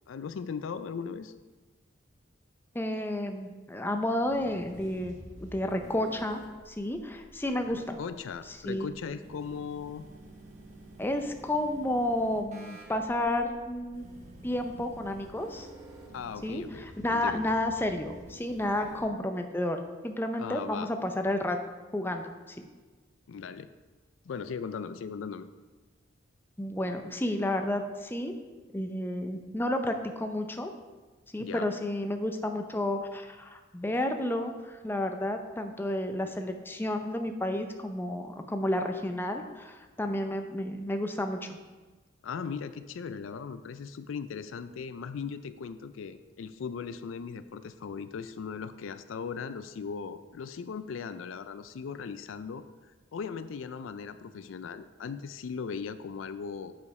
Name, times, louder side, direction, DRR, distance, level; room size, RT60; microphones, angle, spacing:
voice 1, 0.1-1.3 7.7-10.0 16.1-17.4 20.4-20.9 23.3-23.7 24.3-25.5 31.4-31.7 42.2-52.6 53.1-56.7, left 6 dB, 85° left, 12 dB, 0.4 m, -38 dB
voice 2, 2.7-6.4 6.7-8.0 8.6-8.9 11.0-14.1 14.4-15.7 16.4-21.6 21.9-22.6 26.6-28.3 28.7-30.7 31.3-41.6, left 1 dB, 10° left, 5 dB, 0.5 m, -31 dB
sound 1, 4.3-19.0, right 1 dB, 40° right, 1.4 m, -50 dB
8.0 x 5.2 x 4.7 m, 1.3 s
head